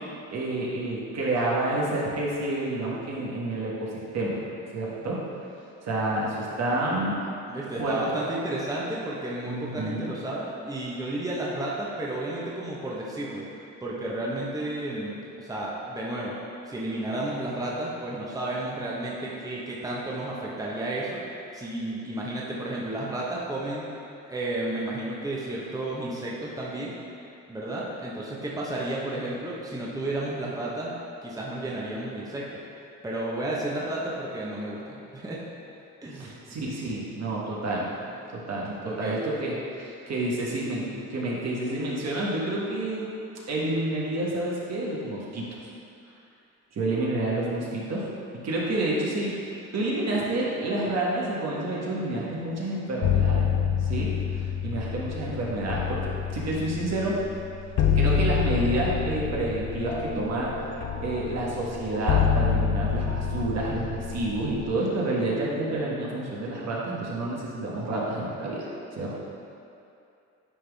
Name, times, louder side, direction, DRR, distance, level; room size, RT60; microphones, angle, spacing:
voice 1, 0.3-3.9 4.1-4.4 4.7-5.2 5.8-7.2 7.8-8.0 9.5-10.1 36.1-37.9 38.3-43.1 43.5-45.5 46.7-48.0 48.4-53.4 53.8-57.2 57.9-60.5 61.0-68.7 69.0-69.2, right 2 dB, 60° right, -5 dB, 1.5 m, -29 dB
voice 2, 7.5-13.5 13.8-16.3 16.7-21.2 21.5-23.9 24.3-27.0 27.5-30.9 31.2-32.6 33.0-35.4 36.0-36.3 38.8-39.3, right 1 dB, 10° right, -5 dB, 1.1 m, -32 dB
sound 1, 53.0-64.7, left 7 dB, 65° left, 0.6 m, -27 dB
sound 2, 59.9-67.5, equal, 20° left, 0.5 m, -43 dB
10.0 x 3.6 x 3.5 m, 2.6 s
cardioid pair, 85°, 30 cm